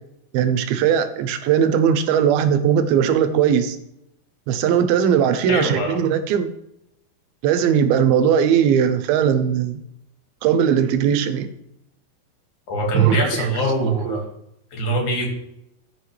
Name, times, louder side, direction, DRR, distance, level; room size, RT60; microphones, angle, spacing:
voice 1, 0.3-3.8 4.5-6.5 7.4-9.8 10.4-11.5 12.9-13.5 13.8-13.9, right 8 dB, 90° right, 10 dB, 2.6 m, -19 dB
voice 2, 5.5-6.0 12.7-14.2 14.7-15.3, right 1 dB, 60° left, 0 dB, 3.2 m, -22 dB
14.5 x 6.3 x 3.3 m, 0.81 s
omnidirectional pair, 4.2 m